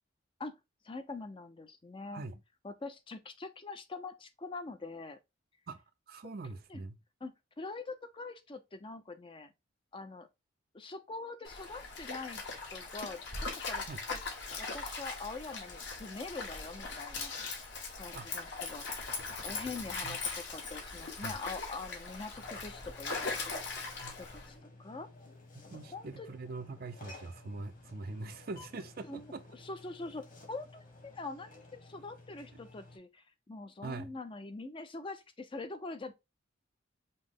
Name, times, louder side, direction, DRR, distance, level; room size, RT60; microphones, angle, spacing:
voice 1, 0.8-2.2 2.6-5.2 6.7-6.8 7.2-9.5 9.9-10.3 10.7-12.5 12.7-13.2 13.7-13.8 14.1-14.2 14.6-17.3 17.9-19.0 19.4-25.1 25.9-26.3 29.1-36.1, left 3 dB, 25° left, 0.5 m, -44 dB
voice 2, 5.7-7.0 13.9-14.0 18.1-18.4 20.0-20.2 21.2-21.3 24.0-24.1 25.5-29.4 32.5-32.6 33.8-34.1, right 3 dB, 50° right, 0.5 m, -43 dB
Stream, 11.4-24.5, left 4 dB, 60° left, 1.3 m, -40 dB
sound 1, 22.3-33.0, left 2 dB, 40° left, 1.5 m, -54 dB
5.3 x 2.1 x 3.5 m
head